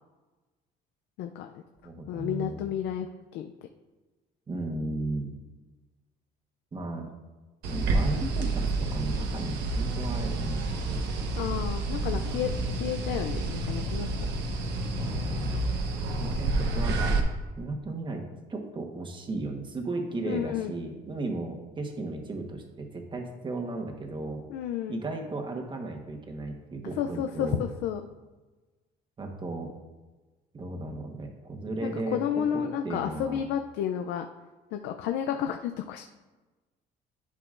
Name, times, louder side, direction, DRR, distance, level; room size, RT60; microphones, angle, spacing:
voice 1, 1.2-1.6 2.1-3.5 11.4-14.1 20.3-20.7 24.5-25.0 27.0-28.0 31.8-34.3 34.7-36.0, left 9 dB, 85° left, 6 dB, 0.5 m, -31 dB
voice 2, 1.8-2.6 4.5-5.3 6.7-7.1 7.7-11.0 12.0-12.9 14.9-15.7 16.2-17.2 17.5-24.4 24.9-27.6 29.2-29.7 30.5-32.2 32.5-33.4, right 2 dB, 30° right, 2 dB, 1.2 m, -35 dB
sound 1, 7.6-17.2, right 2 dB, 85° right, 1.1 m, -29 dB
11.0 x 5.9 x 2.5 m, 1.2 s
cardioid pair, 110°, 17 cm